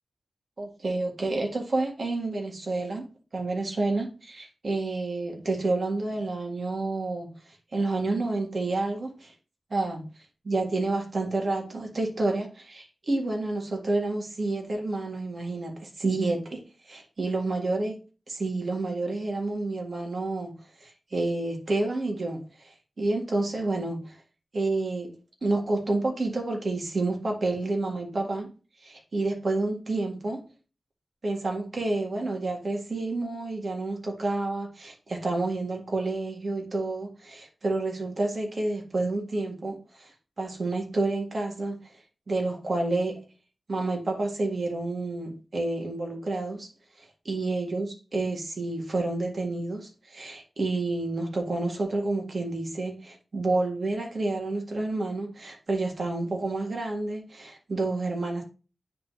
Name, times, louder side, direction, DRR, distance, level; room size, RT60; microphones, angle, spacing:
voice 1, 0.6-3.1 3.3-7.3 7.7-9.3 9.7-10.0 10.5-18.0 18.3-24.1 24.5-25.1 25.4-28.5 28.8-30.4 31.2-40.1 40.4-41.8 42.3-43.2 43.7-46.7 47.0-58.4, right 2 dB, 65° right, 1.9 m, -29 dB
9.6 x 3.7 x 2.8 m
cardioid pair, 45°, 0 cm